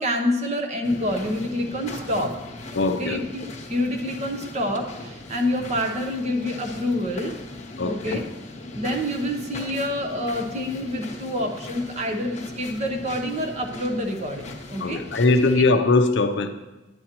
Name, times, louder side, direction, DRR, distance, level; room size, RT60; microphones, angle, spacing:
voice 1, 0.0-2.4 2.8-7.3 7.8-8.2 8.7-15.0 15.6-15.7, left 1 dB, 30° right, 3 dB, 0.8 m, -27 dB
sound 1, 0.8-15.6, left 2 dB, 35° left, 1.1 m, -39 dB
voice 2, 2.7-3.2 7.8-8.2 14.8-16.5, left 3 dB, 55° left, 7 dB, 0.5 m, -20 dB
10.5 x 8.7 x 2.9 m, 1.1 s
head